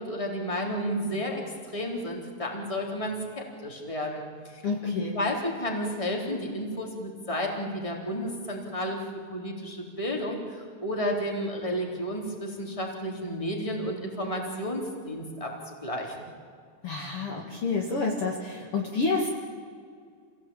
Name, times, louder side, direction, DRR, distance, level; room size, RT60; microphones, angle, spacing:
voice 1, 0.0-1.4 1.7-9.0 9.3-16.3, equal, 10° left, 0 dB, 3.7 m, -32 dB
voice 2, 4.6-5.2 16.8-19.5, left 4 dB, 50° left, 0 dB, 2.7 m, -29 dB
27.0 x 17.5 x 8.9 m, 2.1 s
omnidirectional pair, 3.7 m